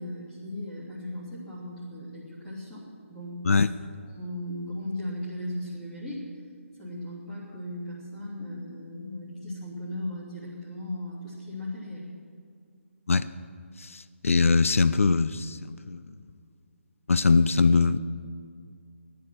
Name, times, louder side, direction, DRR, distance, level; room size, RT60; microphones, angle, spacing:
voice 1, 0.0-3.6 4.1-6.2 6.8-12.1, left 1 dB, 10° left, -8 dB, 3.1 m, -37 dB
voice 2, 13.8-16.0 17.1-18.0, left 4 dB, 75° left, 14 dB, 0.6 m, -22 dB
15.0 x 10.5 x 6.9 m, 2.2 s
hypercardioid pair, 170°, 7 cm